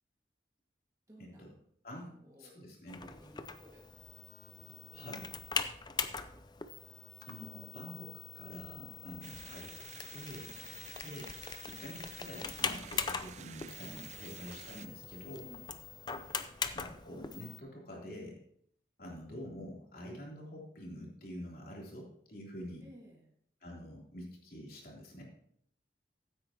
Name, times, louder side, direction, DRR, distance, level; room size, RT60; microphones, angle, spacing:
voice 1, 1.1-1.5 1.9-2.5 2.9-3.9 4.4-5.7 8.9-9.1 10.5-10.6 15.4-15.8 22.8-23.3, equal, 20° right, -4 dB, 1.9 m, -57 dB
voice 2, 2.4-3.0 4.9-5.2 7.2-9.8 10.1-10.5 11.0-11.3 11.6-15.5 16.7-18.4 19.0-22.9 23.6-25.2, equal, 55° left, -3 dB, 3.4 m, -47 dB
sound 1, 2.9-17.6, left 5 dB, 25° left, 0.5 m, -42 dB
sound 2, 9.2-14.9, right 9 dB, 40° right, 0.3 m, -51 dB
15.0 x 8.7 x 3.0 m, 0.69 s
head